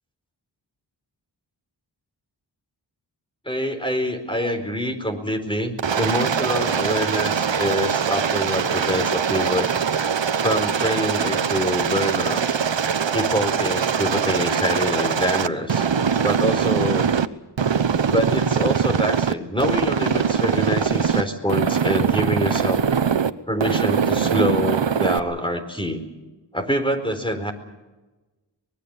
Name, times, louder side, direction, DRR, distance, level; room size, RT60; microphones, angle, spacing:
voice 1, 3.5-9.7 10.4-12.4 13.1-15.8 16.2-17.1 18.1-22.8 23.5-26.0 26.5-27.5, equal, 10° left, 6 dB, 4.4 m, -25 dB
Aircraft, 5.8-17.3 17.6-19.3 19.6-21.2 21.5-23.3 23.6-25.2, right 7 dB, 80° right, 1.0 m, -22 dB
24.0 x 21.0 x 7.2 m, 1.1 s
wide cardioid pair, 70°, 43 cm